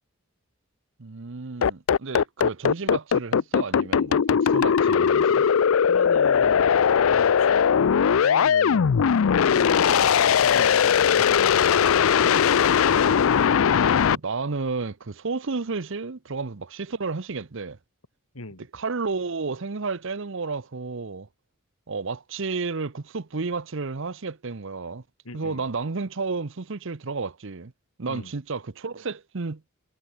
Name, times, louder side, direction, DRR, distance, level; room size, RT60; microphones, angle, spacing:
voice 1, 1.0-5.4 8.8-8.9 12.3-12.4 14.1-17.8 18.7-21.3 21.9-25.0 25.3-27.7 28.0-29.7, right 4 dB, 60° right, 0.8 m, -32 dB
sound 1, 1.6-14.2, left 7 dB, 75° left, 0.4 m, -19 dB
voice 2, 5.9-6.7 7.0-10.1 10.4-12.6 18.3-18.7 25.3-25.7 28.1-28.3, left 2 dB, 90° left, 3.6 m, -39 dB
head